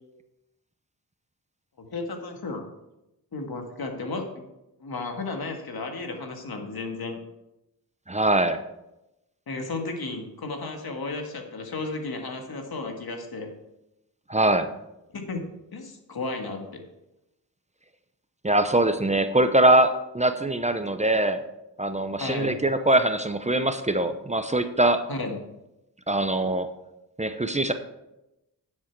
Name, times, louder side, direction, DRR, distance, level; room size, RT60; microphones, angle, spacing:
voice 1, 1.8-2.6 3.3-4.4 4.8-7.2 9.5-13.5 15.1-15.4 15.7-16.6 22.2-22.6 25.1-25.4, left 3 dB, 70° left, 3 dB, 1.9 m, -33 dB
voice 2, 8.1-8.6 14.3-14.7 18.4-21.4 21.8-25.0 26.1-26.7 27.2-27.7, right 1 dB, 20° right, 9 dB, 0.8 m, -22 dB
10.5 x 7.6 x 4.7 m, 0.91 s
cardioid pair, 65°, 38 cm